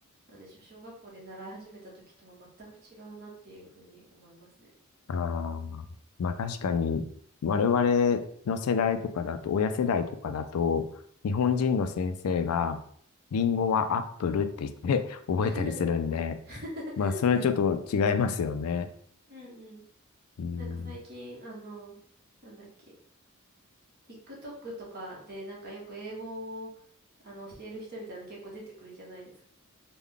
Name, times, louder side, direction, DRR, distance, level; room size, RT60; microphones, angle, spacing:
voice 1, 0.3-1.9 2.2-4.7 11.5-11.8 15.4-15.8 16.5-17.5 19.3-19.8 20.5-21.9 22.4-22.7 24.3-26.7 27.2-29.4, right 1 dB, 45° right, -4 dB, 1.2 m, -43 dB
voice 2, 5.1-5.9 6.2-7.0 7.4-10.9 11.2-12.8 13.3-16.4 17.0-18.9 20.4-21.0, left 6 dB, 85° left, 9 dB, 0.4 m, -27 dB
3.4 x 2.2 x 3.6 m, 0.62 s
head